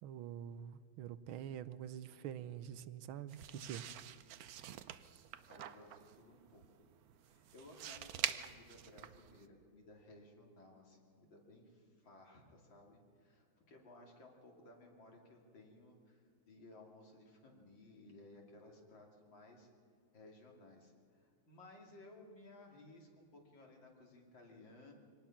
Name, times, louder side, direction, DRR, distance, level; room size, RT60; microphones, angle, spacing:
voice 1, 0.0-3.8, right 9 dB, 90° right, 1.6 m, -46 dB
sound 1, 3.3-9.5, right 10 dB, 65° right, 0.9 m, -46 dB
voice 2, 4.8-6.6 7.2-19.7 20.1-24.9, left 2 dB, 70° left, 3.5 m, -59 dB
24.0 x 19.0 x 5.9 m
omnidirectional pair, 2.2 m